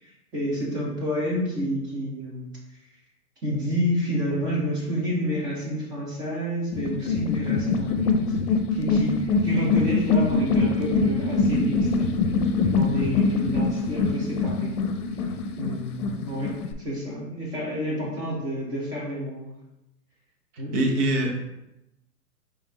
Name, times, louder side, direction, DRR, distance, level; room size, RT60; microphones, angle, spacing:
voice 1, 0.0-2.5 3.4-8.4 8.7-12.1 12.7-14.8 15.6-19.5 20.6-20.7, equal, 10° right, -4 dB, 0.4 m, -29 dB
sound 1, 6.7-16.7, left 4 dB, 65° left, 0.6 m, -24 dB
voice 2, 20.7-21.4, right 1 dB, 50° right, 0 dB, 1.0 m, -23 dB
4.9 x 2.6 x 3.1 m, 0.90 s
hypercardioid pair, 125°, 48 cm